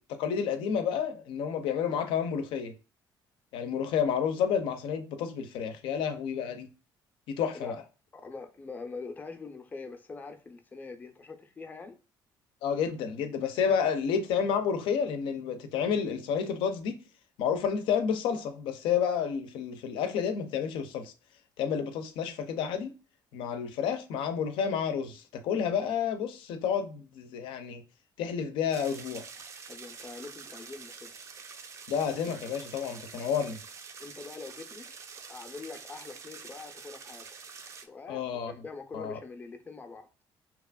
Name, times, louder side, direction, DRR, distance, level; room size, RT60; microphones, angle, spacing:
voice 1, 0.1-2.7 3.5-6.7 7.3-7.8 12.6-17.0 17.4-21.1 21.6-23.0 23.3-27.8 28.2-29.3 31.9-33.6 38.1-38.5 38.9-39.2, left 7 dB, 85° left, 0.5 m, -30 dB
voice 2, 8.1-12.0 29.7-31.1 34.0-34.9 35.3-37.3 37.8-40.1, left 4 dB, 20° left, 0.5 m, -43 dB
sound 1, 28.7-37.9, right 5 dB, 35° right, 0.4 m, -46 dB
2.9 x 2.4 x 2.2 m
cardioid pair, 145°, 8 cm